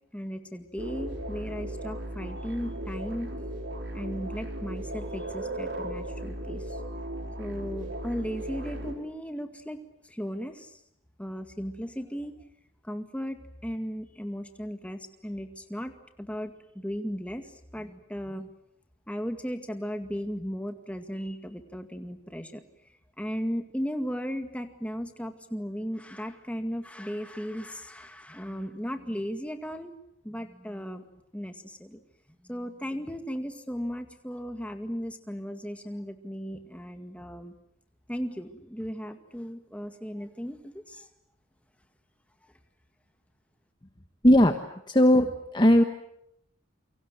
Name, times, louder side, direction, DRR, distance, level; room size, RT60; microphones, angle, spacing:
voice 1, 0.1-3.3 3.9-6.8 7.4-10.8 11.2-12.4 12.8-15.9 16.2-18.5 19.1-22.6 23.2-29.9 30.2-32.0 32.4-37.5 38.1-41.1, equal, 5° left, 6 dB, 2.0 m, -36 dB
sound 1, 0.8-9.0, right 1 dB, 60° right, 4.4 m, -36 dB
voice 2, 44.2-44.6 44.9-45.8, equal, 20° left, 6 dB, 1.2 m, -18 dB
29.0 x 24.0 x 8.0 m, 0.77 s
head